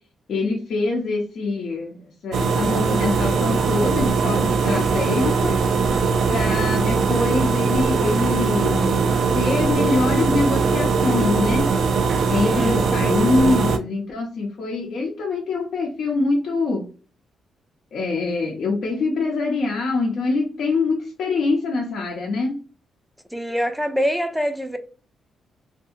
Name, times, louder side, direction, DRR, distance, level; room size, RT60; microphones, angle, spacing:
voice 1, 0.3-5.6 6.3-9.1 9.3-11.7 12.3-16.9 17.9-22.6, left 3 dB, 70° left, 0.7 m, -24 dB
sound 1, 2.3-13.8, right 5 dB, 75° right, 0.4 m, -20 dB
voice 2, 12.4-12.8 23.3-24.8, equal, ahead, 0.4 m, -24 dB
2.7 x 2.6 x 2.4 m
cardioid pair, 105°, 0 cm